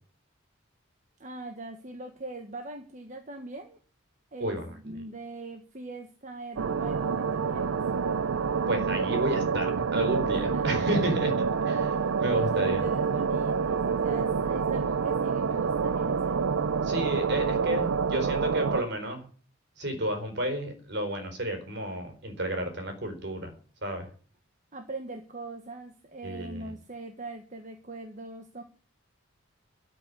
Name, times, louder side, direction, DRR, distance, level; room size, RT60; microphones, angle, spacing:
voice 1, 1.2-3.8 4.3-7.8 10.3-11.1 11.8-16.4 24.7-28.6, right 2 dB, 35° right, 5 dB, 1.5 m, -41 dB
sound 1, 6.6-18.8, right 5 dB, 80° right, 0.5 m, -27 dB
voice 2, 8.7-11.3 11.6-12.8 16.8-19.3 19.8-23.5 23.8-24.1 26.2-26.6, right 1 dB, 55° right, 5 dB, 4.4 m, -31 dB
13.0 x 6.3 x 9.6 m, 0.41 s
head